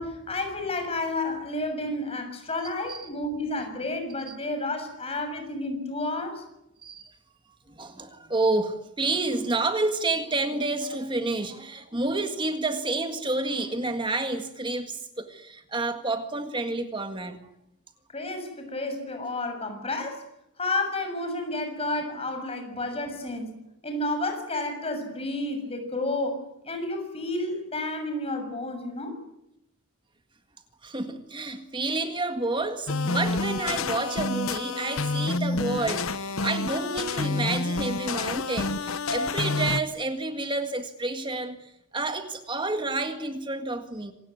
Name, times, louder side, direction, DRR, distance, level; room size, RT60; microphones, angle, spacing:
voice 1, 0.0-6.4 18.1-20.2 20.6-23.6 23.8-29.2, left 2 dB, 25° left, 6.8 m, -31 dB
voice 2, 6.8-7.2 7.8-17.5 30.8-44.1, right 2 dB, 20° right, 1.9 m, -29 dB
sound 1, 32.9-39.8, left 3 dB, 65° left, 1.2 m, -28 dB
27.0 x 18.0 x 9.5 m
head